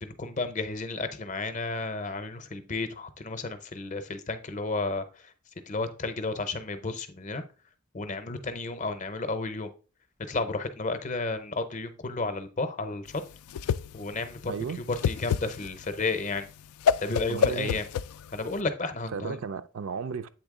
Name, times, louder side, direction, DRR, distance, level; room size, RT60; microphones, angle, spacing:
voice 1, 0.0-5.0 5.7-7.4 7.9-9.7 10.3-13.2 13.9-14.5 14.9-16.5 17.0-17.8 18.3-19.4, left 3 dB, 35° left, 0.6 m, -32 dB
Whoosh swoosh swish, 13.1-18.6, left 7 dB, 90° left, 0.3 m, -29 dB
voice 2, 14.5-14.8 17.3-17.8 19.1-20.3, right 6 dB, 65° right, 0.4 m, -34 dB
8.0 x 3.5 x 3.6 m
head